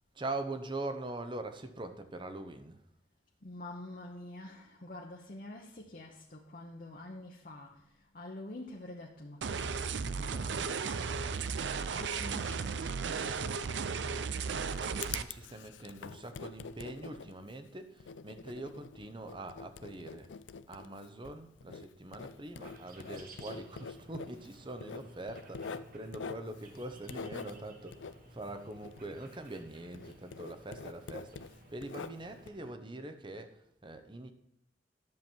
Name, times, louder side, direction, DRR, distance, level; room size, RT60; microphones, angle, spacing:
voice 1, 0.1-2.8 14.4-20.3 20.7-34.3, right 2 dB, 25° right, 0.8 m, -43 dB
voice 2, 3.4-13.8, left 1 dB, 50° left, 1.0 m, -48 dB
sound 1, 9.4-15.2, right 5 dB, 75° right, 0.5 m, -35 dB
Writing, 14.3-29.7 29.9-32.5, left 5 dB, 85° left, 0.5 m, -46 dB
sound 2, 22.6-32.7, right 2 dB, 50° right, 1.3 m, -56 dB
11.0 x 7.2 x 4.5 m
head